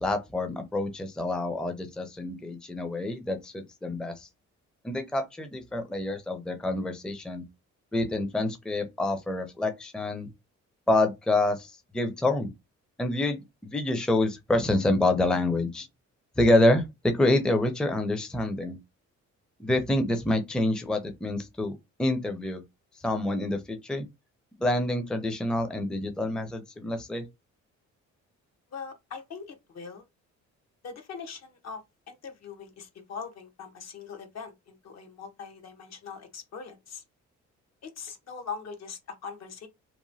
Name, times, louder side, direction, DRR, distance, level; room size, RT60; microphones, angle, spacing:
voice 1, 0.0-4.3 4.8-7.4 7.9-10.3 10.9-12.5 13.0-15.9 16.4-18.8 19.6-21.7 22.0-22.6 23.0-24.1 24.6-27.2, left 1 dB, 5° left, 0.5 m, -27 dB
voice 2, 28.7-30.0 30.8-37.0 37.8-39.7, left 5 dB, 60° left, 1.0 m, -41 dB
2.9 x 2.2 x 2.6 m
cardioid pair, 90°, 30 cm